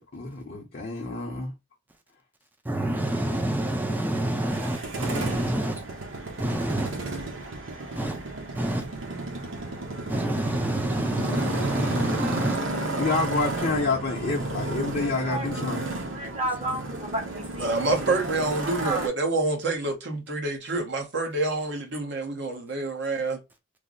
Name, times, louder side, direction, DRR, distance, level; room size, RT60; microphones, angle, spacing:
voice 1, 0.1-1.5 13.0-15.8, left 3 dB, 45° left, 0.7 m, -28 dB
voice 2, 2.6-5.8 6.4-6.9 7.9-8.2 8.5-8.9 10.1-12.6, right 1 dB, 10° right, 0.5 m, -27 dB
Motorcycle, 4.4-19.1, right 2 dB, 85° right, 0.9 m, -33 dB
voice 3, 15.2-15.6 16.1-17.7 18.8-19.0, right 1 dB, 30° right, 0.9 m, -31 dB
voice 4, 17.6-23.4, right 2 dB, 60° right, 1.0 m, -27 dB
3.2 x 2.0 x 3.7 m
head